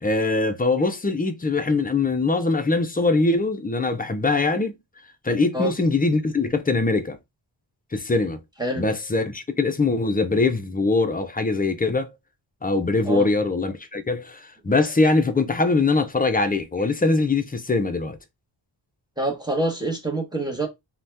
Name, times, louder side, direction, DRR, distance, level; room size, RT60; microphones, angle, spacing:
voice 1, 0.0-4.7 5.2-7.2 7.9-8.4 8.8-12.1 12.6-18.2, left 3 dB, 20° left, 0.4 m, -22 dB
voice 2, 19.2-20.7, right 1 dB, 10° right, 0.9 m, -26 dB
2.7 x 2.2 x 3.3 m
wide cardioid pair, 85°, 46 cm